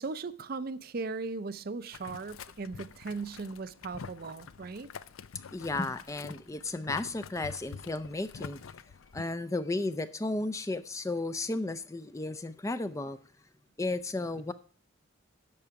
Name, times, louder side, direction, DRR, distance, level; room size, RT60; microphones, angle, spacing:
voice 1, 0.0-4.9, right 4 dB, 45° right, 0.5 m, -38 dB
Boiling, 1.9-9.2, left 6 dB, 90° left, 0.5 m, -47 dB
voice 2, 5.5-8.6 9.1-13.2 13.8-14.5, left 2 dB, 15° left, 0.4 m, -34 dB
11.0 x 6.9 x 4.7 m
head